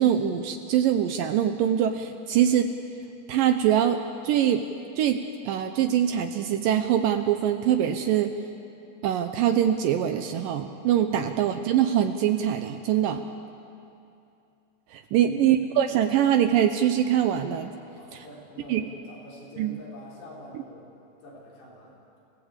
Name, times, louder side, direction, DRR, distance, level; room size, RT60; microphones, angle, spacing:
voice 1, 0.0-2.7 3.3-4.6 5.0-8.3 9.0-13.2 14.9-17.7 18.1-18.2 18.7-18.9 19.6-19.8 20.5-20.6, right 10 dB, 80° right, 7 dB, 1.9 m, -23 dB
voice 2, 15.2-15.5 18.0-20.9 21.2-22.0, right 2 dB, 75° left, -5 dB, 6.8 m, -44 dB
28.5 x 16.5 x 8.2 m, 2.7 s
omnidirectional pair, 4.9 m